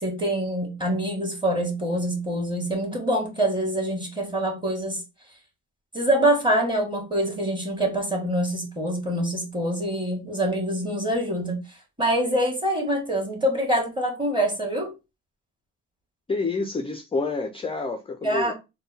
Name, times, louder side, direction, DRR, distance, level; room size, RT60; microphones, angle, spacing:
voice 1, 0.0-5.0 5.9-11.6 12.0-14.9 18.2-18.5, right 1 dB, 15° right, 1.6 m, -25 dB
voice 2, 16.3-18.5, left 3 dB, 15° left, 0.4 m, -28 dB
3.5 x 2.2 x 4.0 m
cardioid pair, 90°, 35 cm